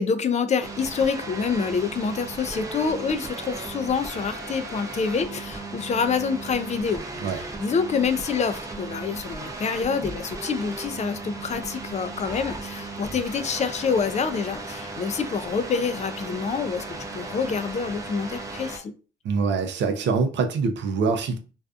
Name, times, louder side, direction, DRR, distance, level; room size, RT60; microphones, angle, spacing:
voice 1, 0.0-7.0 7.3-18.9, left 5 dB, 35° left, 0.4 m, -27 dB
sound 1, 0.6-18.8, right 3 dB, 15° right, 0.6 m, -36 dB
voice 2, 19.2-21.4, right 5 dB, 65° right, 0.5 m, -24 dB
2.5 x 2.3 x 2.3 m
cardioid pair, 90°, 20 cm